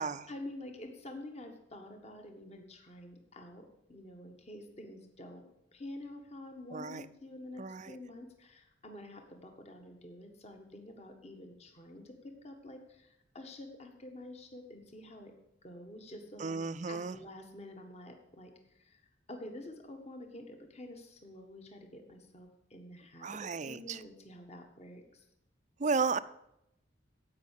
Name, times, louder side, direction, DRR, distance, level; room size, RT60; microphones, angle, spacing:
voice 1, 0.3-15.3 15.6-16.6 16.9-19.0 19.3-25.2, left 1 dB, 35° left, 4 dB, 1.6 m, -48 dB
voice 2, 6.7-7.1 7.6-8.0 16.4-17.2 23.2-24.0 25.8-26.2, right 4 dB, 40° right, 14 dB, 0.6 m, -34 dB
15.5 x 5.8 x 8.4 m, 0.82 s
head